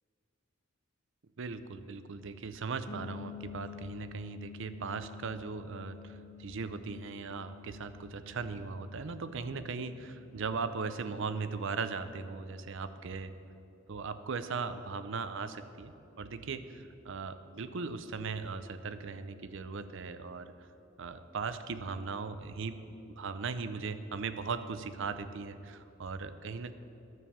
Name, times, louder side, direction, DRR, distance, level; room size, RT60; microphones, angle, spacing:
voice 1, 1.4-13.3 13.9-20.5 21.0-26.7, right 4 dB, 65° right, 11 dB, 0.6 m, -38 dB
sound 1, 2.9-12.6, left 8 dB, 65° left, 0.9 m, -51 dB
11.0 x 7.3 x 7.1 m, 2.8 s
head